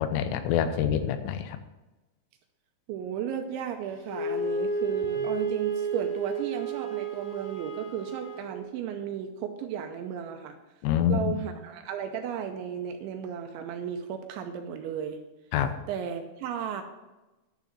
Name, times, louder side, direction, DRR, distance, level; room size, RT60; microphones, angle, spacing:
voice 1, 0.0-1.6 10.8-11.4 15.5-15.7, left 9 dB, 90° left, 9 dB, 3.3 m, -26 dB
voice 2, 2.9-10.6 11.1-15.2 15.9-16.8, right 8 dB, 80° right, 5 dB, 2.8 m, -34 dB
Wind instrument woodwind instrument, 4.0-8.5, right 4 dB, 75° left, 6.5 m, -31 dB
11.0 x 6.1 x 7.6 m, 1.1 s
omnidirectional pair, 5.8 m